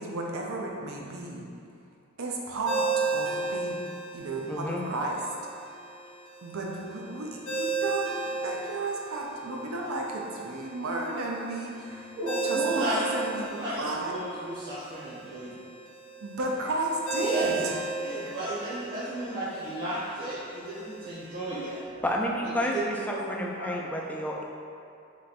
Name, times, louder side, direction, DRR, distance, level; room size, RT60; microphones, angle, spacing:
voice 1, 0.0-1.4 2.2-3.8 4.1-5.2 5.6-5.7 6.4-12.2 12.4-14.2 14.8-14.9 16.2-17.7 18.0-18.4, right 2 dB, 70° right, -1 dB, 0.6 m, -33 dB
Ringtone, 2.7-21.8, right 4 dB, 85° left, 0.8 m, -36 dB
voice 2, 4.5-4.8 22.0-24.4, equal, 5° left, -1 dB, 0.3 m, -30 dB
voice 3, 12.2-13.0 13.4-13.8 14.1-15.5 17.2-17.5 18.0-21.8 22.6-22.8 23.1-23.2 23.6-23.7, right 1 dB, 40° right, -11 dB, 1.0 m, -34 dB
3.3 x 3.2 x 4.1 m, 2.5 s
head